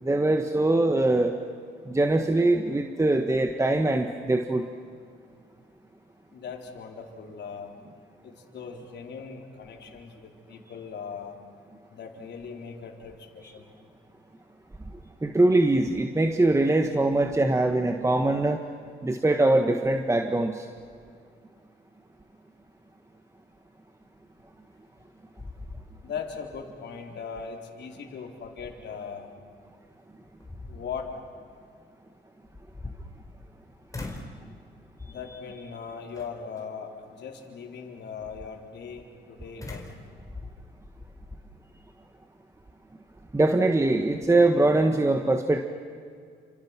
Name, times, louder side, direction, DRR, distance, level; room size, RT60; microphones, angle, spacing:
voice 1, 0.0-1.3 1.9-4.6 15.2-18.6 19.0-20.7 43.3-45.6, right 2 dB, 15° right, 5 dB, 1.5 m, -22 dB
voice 2, 6.3-7.7 8.2-11.4 11.9-13.7 26.0-29.3 30.7-31.1 35.1-39.9, left 6 dB, 60° left, 1 dB, 4.1 m, -39 dB
sound 1, 24.7-25.1 25.4-26.4 26.8-26.9 29.5-29.6 30.2-31.1 32.4-33.6 33.9-34.4 35.0-35.4 36.1-36.6 39.6-41.4, left 2 dB, 15° left, 4.5 m, -41 dB
30.0 x 27.0 x 6.1 m, 2.2 s
cardioid pair, 90°, 20 cm